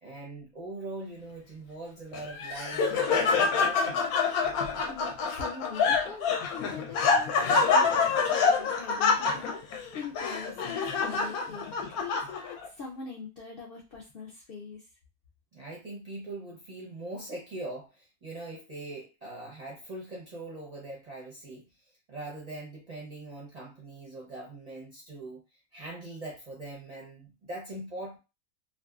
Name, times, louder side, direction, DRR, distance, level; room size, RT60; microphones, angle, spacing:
voice 1, 0.0-4.1 15.5-21.7 22.1-25.4 25.7-28.2, right 2 dB, 45° right, -4 dB, 0.5 m, -41 dB
Laughter, 2.1-12.7, left 5 dB, 90° left, 1.1 m, -26 dB
voice 2, 4.6-14.9, left 5 dB, 60° left, -3 dB, 0.6 m, -43 dB
2.6 x 2.5 x 2.3 m, 0.28 s
omnidirectional pair, 1.5 m